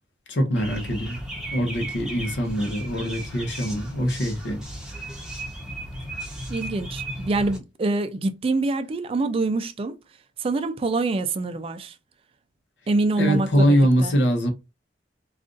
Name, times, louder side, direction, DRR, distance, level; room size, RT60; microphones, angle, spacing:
voice 1, 0.3-1.2 1.5-4.6 13.2-14.5, equal, 80° left, 0.8 m, -23 dB
sound 1, 0.6-7.6, right 1 dB, 5° right, 0.8 m, -35 dB
voice 2, 6.5-10.0 10.4-11.9 12.9-14.1, right 3 dB, 30° right, 0.3 m, -25 dB
2.5 x 2.4 x 3.7 m
head